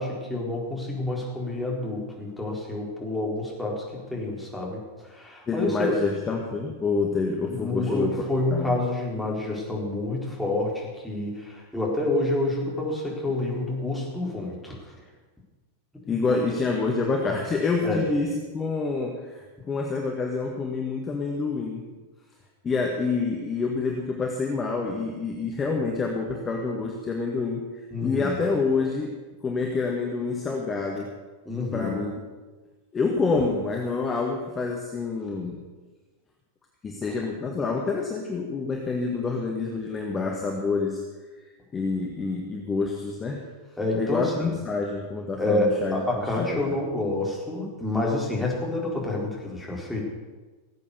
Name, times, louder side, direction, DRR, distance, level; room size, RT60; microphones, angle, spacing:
voice 1, 0.0-5.9 7.5-14.7 16.1-16.2 17.8-18.0 27.9-28.3 31.5-32.0 43.8-44.6 45.4-50.0, left 2 dB, 5° left, -4 dB, 4.2 m, -28 dB
voice 2, 5.5-8.2 8.5-8.7 16.1-21.8 22.6-29.1 29.4-31.1 31.7-32.2 32.9-35.6 36.8-41.0 41.7-43.4 44.0-46.6, left 4 dB, 20° left, 0 dB, 1.8 m, -27 dB
17.5 x 8.5 x 6.9 m, 1.3 s
figure-of-eight pair, 90°, 0 cm